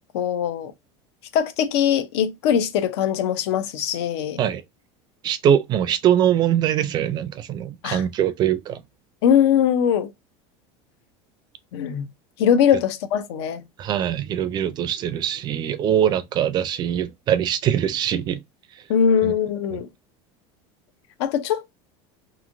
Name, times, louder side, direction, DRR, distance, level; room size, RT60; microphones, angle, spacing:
voice 1, 0.1-0.7 1.3-4.4 7.8-8.0 9.2-10.1 11.7-12.1 12.4-13.6 18.9-19.9 21.2-21.7, left 8 dB, 85° left, 0.6 m, -21 dB
voice 2, 5.2-8.8 13.8-18.4 19.2-19.3 19.7-19.8, right 10 dB, 30° right, 0.4 m, -22 dB
3.0 x 2.6 x 2.5 m
supercardioid pair, 155°, 14 cm